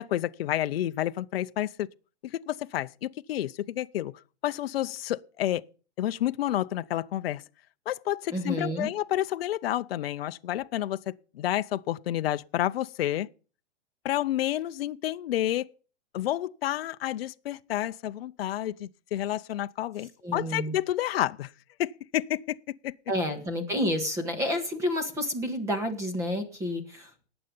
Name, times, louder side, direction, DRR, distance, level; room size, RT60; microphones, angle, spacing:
voice 1, 0.0-1.9 2.2-4.1 4.4-5.6 6.0-7.4 7.9-13.3 14.0-15.7 16.1-21.5 21.8-22.9, left 13 dB, 55° left, 0.6 m, -30 dB
voice 2, 8.3-8.9 20.2-20.7 23.1-27.3, left 1 dB, 10° right, 1.6 m, -30 dB
19.0 x 7.9 x 5.3 m
hypercardioid pair, 175°, 35 cm